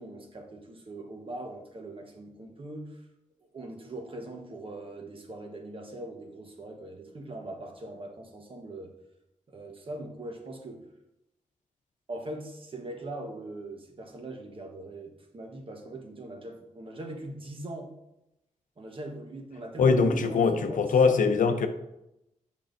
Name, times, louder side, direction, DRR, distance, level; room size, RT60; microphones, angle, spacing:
voice 1, 0.0-3.0 3.4-8.9 9.5-10.8 12.1-17.9 18.8-21.2, right 1 dB, 45° right, 3 dB, 1.1 m, -41 dB
voice 2, 19.8-21.7, left 5 dB, 90° left, 8 dB, 0.6 m, -22 dB
8.5 x 5.4 x 2.6 m, 0.87 s
wide cardioid pair, 105°, 13 cm